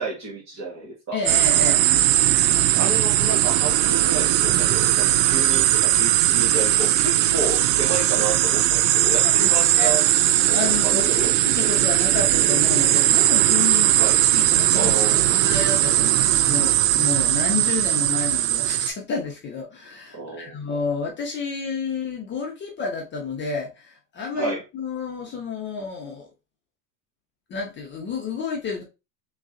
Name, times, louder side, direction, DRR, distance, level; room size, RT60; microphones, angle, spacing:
voice 1, 0.0-1.2 2.7-10.1 10.5-11.3 13.9-14.2 14.7-15.5 20.1-20.6 24.3-24.6, right 3 dB, 35° right, 1.9 m, -31 dB
voice 2, 1.1-1.9 9.0-9.9 10.5-14.0 14.3-26.3 27.5-28.8, left 5 dB, 25° left, 0.7 m, -30 dB
sound 1, 1.3-18.9, right 14 dB, 90° right, 0.6 m, -19 dB
3.7 x 3.2 x 3.7 m
supercardioid pair, 150°, 48 cm